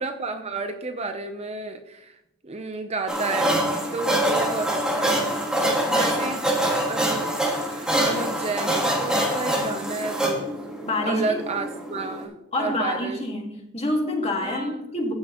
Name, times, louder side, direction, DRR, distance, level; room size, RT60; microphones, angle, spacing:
voice 1, 0.0-3.6 3.9-10.5 11.0-13.2 14.4-14.9, right 3 dB, 30° right, 0.6 m, -32 dB
sound 1, 3.1-12.2, right 1 dB, 5° right, 1.5 m, -25 dB
voice 2, 10.8-11.4 12.5-15.1, left 1 dB, 25° left, 1.8 m, -27 dB
15.0 x 6.1 x 3.0 m
head